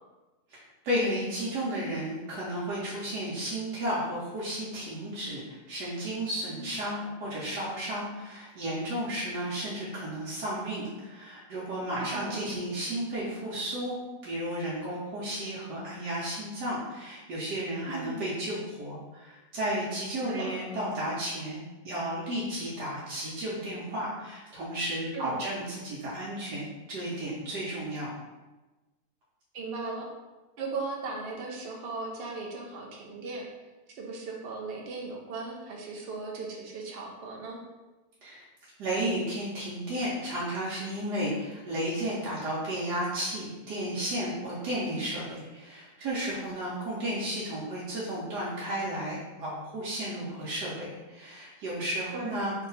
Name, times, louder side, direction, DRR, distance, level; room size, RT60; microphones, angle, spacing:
voice 1, 0.5-13.9 14.2-28.1 38.2-38.4 38.8-52.5, right 1 dB, 85° right, -8 dB, 1.4 m, -33 dB
voice 2, 12.0-12.5 17.9-18.2 20.3-20.6 25.1-25.4 29.5-30.1 30.6-33.5 33.9-37.6 44.8-45.1 52.1-52.4, right 3 dB, 55° right, -1 dB, 0.6 m, -37 dB
3.2 x 2.8 x 3.9 m, 1.1 s
omnidirectional pair, 1.7 m